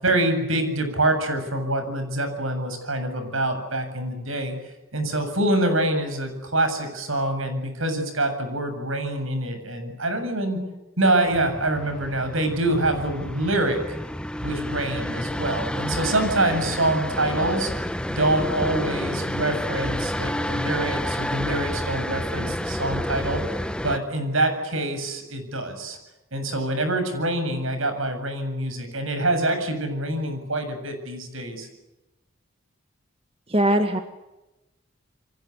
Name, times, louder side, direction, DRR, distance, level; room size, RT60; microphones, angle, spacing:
voice 1, 0.0-4.6 4.9-10.6 11.0-13.8 14.4-17.7 18.1-23.4 23.8-26.0 26.3-31.7, right 1 dB, 80° right, 8 dB, 7.7 m, -25 dB
sound 1, 11.3-24.0, equal, 5° left, 1.0 m, -29 dB
voice 2, 33.5-34.0, right 1 dB, 25° right, 7 dB, 1.8 m, -20 dB
29.0 x 24.0 x 8.2 m, 1.0 s
head